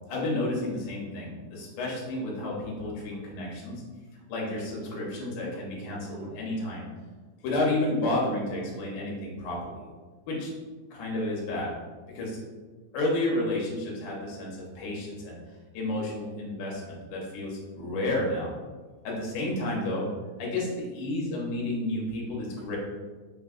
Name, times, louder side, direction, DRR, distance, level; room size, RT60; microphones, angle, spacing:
voice 1, 0.1-3.8 4.3-6.9 7.4-9.9 10.3-10.5 10.9-11.8 12.1-12.4 12.9-15.4 15.7-18.5 19.0-20.1 20.4-22.8, left 2 dB, 75° left, -3 dB, 2.4 m, -31 dB
sound 1, 1.8-3.2 4.8-6.4, right 1 dB, 70° right, 1.7 m, -49 dB
5.4 x 2.2 x 2.4 m, 1.4 s
omnidirectional pair, 3.9 m